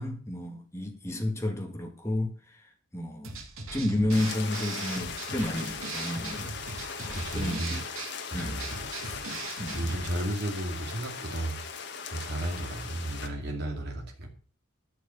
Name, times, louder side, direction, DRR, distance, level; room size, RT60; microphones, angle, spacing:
voice 1, 0.0-3.3 3.7-6.5 7.0-7.9 8.3-8.6 9.0-9.2 9.6-9.8, left 1 dB, 15° left, 2.0 m, -31 dB
sound 1, 3.2-10.1, right 3 dB, 90° right, 2.3 m, -39 dB
sound 2, 4.1-13.3, left 6 dB, 55° left, 1.5 m, -39 dB
voice 2, 7.1-7.8 8.3-8.7 9.7-11.6 12.1-14.3, right 1 dB, 50° right, 2.5 m, -33 dB
11.5 x 6.4 x 7.0 m
head